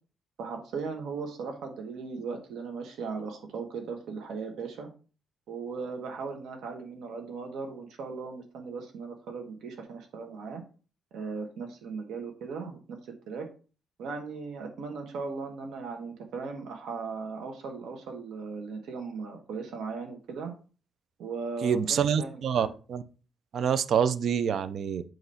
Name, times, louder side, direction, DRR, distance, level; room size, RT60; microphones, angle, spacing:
voice 1, 0.4-4.9 5.5-10.6 11.1-13.0 13.3-13.5 14.0-20.5 21.2-22.7, right 4 dB, 80° right, 3 dB, 1.3 m, -37 dB
voice 2, 21.6-23.0 23.5-25.0, right 7 dB, 50° right, 14 dB, 0.5 m, -26 dB
8.0 x 3.0 x 5.6 m, 0.36 s
cardioid pair, 170°, 0 cm